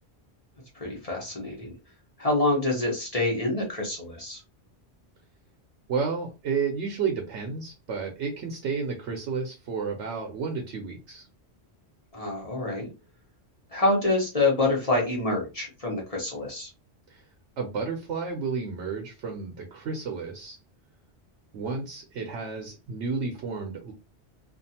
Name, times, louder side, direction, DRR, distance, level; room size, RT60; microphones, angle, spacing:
voice 1, 0.7-1.7 2.2-4.4 12.1-12.9 13.7-16.7, left 2 dB, 35° left, -2 dB, 0.9 m, -26 dB
voice 2, 5.9-11.3 17.1-17.2 17.6-20.6 21.5-23.9, right 5 dB, 80° right, 2 dB, 1.0 m, -31 dB
2.5 x 2.4 x 2.7 m, 0.28 s
omnidirectional pair, 1.2 m